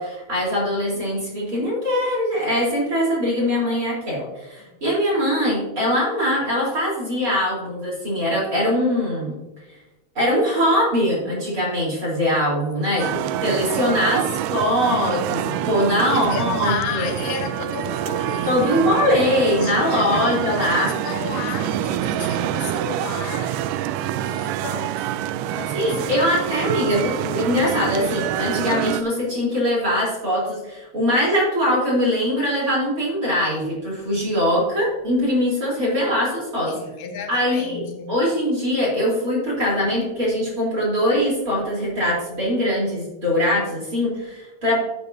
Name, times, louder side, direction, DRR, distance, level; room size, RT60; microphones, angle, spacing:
voice 1, 0.0-9.4 10.2-13.0 13.4-17.1 18.5-20.9 25.7-36.7 37.3-44.8, equal, 25° right, 3.8 m, -22 dB
voice 2, 12.8-13.4 16.1-18.9 19.5-23.8 24.2-25.1 25.6-26.2 36.6-38.1, left 6 dB, 90° left, 2.8 m, -33 dB
sound 1, 13.0-29.0, right 11 dB, 85° right, 2.1 m, -26 dB
14.0 x 7.9 x 2.7 m
omnidirectional pair, 3.7 m